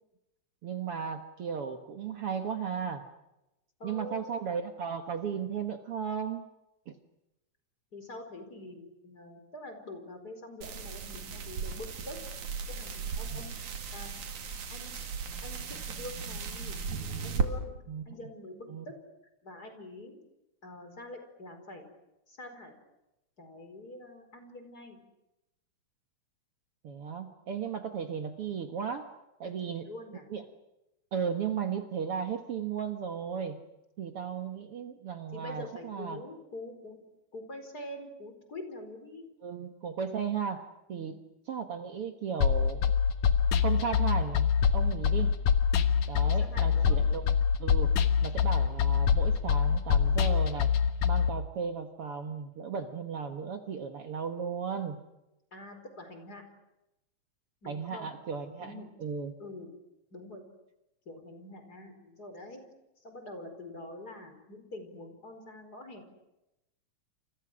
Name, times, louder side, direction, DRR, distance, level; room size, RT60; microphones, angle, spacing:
voice 1, 0.6-3.0 3.8-6.5 6.9-7.0 13.3-13.4 17.9-18.1 18.7-18.9 26.8-29.1 29.4-29.9 30.3-30.4 31.1-33.6 34.0-36.2 39.4-41.2 41.5-42.9 43.6-45.3 46.1-47.9 48.2-50.7 51.0-55.0 57.7-59.3, right 6 dB, 55° right, 6 dB, 2.1 m, -35 dB
voice 2, 3.8-4.2 7.9-12.2 12.8-13.6 13.9-14.1 14.7-14.9 15.4-16.8 17.2-17.8 18.1-18.9 19.4-20.2 20.6-21.9 22.3-22.7 23.4-25.0 29.4-30.3 35.3-37.0 37.3-39.3 40.9-41.2 46.2-47.0 55.5-56.4 57.6-58.1 58.6-58.9 59.4-59.7 60.1-60.4 61.0-62.6 63.0-66.0, left 1 dB, 30° left, 6 dB, 5.1 m, -45 dB
sound 1, 10.6-17.5, right 5 dB, 80° right, 3.8 m, -36 dB
sound 2, 42.4-51.3, left 7 dB, 70° left, 2.7 m, -25 dB
29.0 x 28.5 x 6.3 m, 0.92 s
omnidirectional pair, 3.4 m